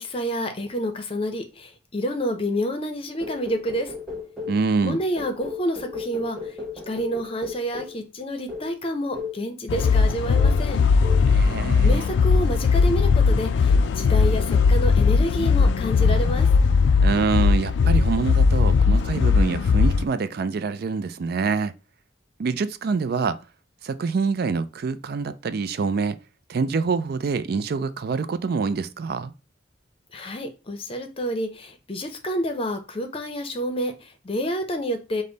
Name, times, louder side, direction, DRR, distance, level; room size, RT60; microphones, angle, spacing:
voice 1, 0.0-3.9 4.8-6.5 6.9-10.8 11.8-16.5 30.1-35.2, equal, 30° left, 0.6 m, -29 dB
sound 1, 3.2-4.6 5.2-8.0 8.5-8.7 9.1-9.4 9.8-10.1 10.4-10.7 11.0-11.3, left 4 dB, ahead, 1.2 m, -35 dB
voice 2, 4.5-5.0 11.3-12.0 17.0-21.7 22.4-23.4 23.8-26.2 26.5-29.3, right 4 dB, 55° right, 0.4 m, -25 dB
sound 2, 9.7-20.0, left 5 dB, 85° left, 0.3 m, -19 dB
5.2 x 2.1 x 3.9 m
head